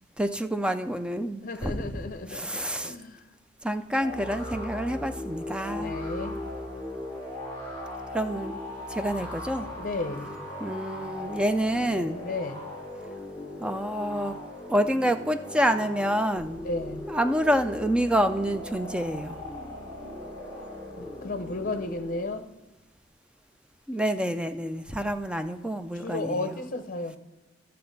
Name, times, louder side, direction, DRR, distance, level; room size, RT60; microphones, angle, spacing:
voice 1, 0.2-3.0 3.6-5.9 8.1-8.6 8.9-9.7 10.6-12.2 13.6-14.3 14.7-16.6 17.1-19.4 23.9-26.6, equal, 5° right, 8 dB, 0.4 m, -28 dB
voice 2, 1.4-3.2 5.6-6.4 9.8-10.4 12.2-12.7 16.6-17.1 21.0-22.5 26.0-27.2, left 2 dB, 45° left, 8 dB, 0.7 m, -34 dB
sound 1, 4.0-22.4, left 1 dB, 10° left, 3.9 m, -38 dB
13.0 x 6.7 x 4.0 m, 1.1 s
head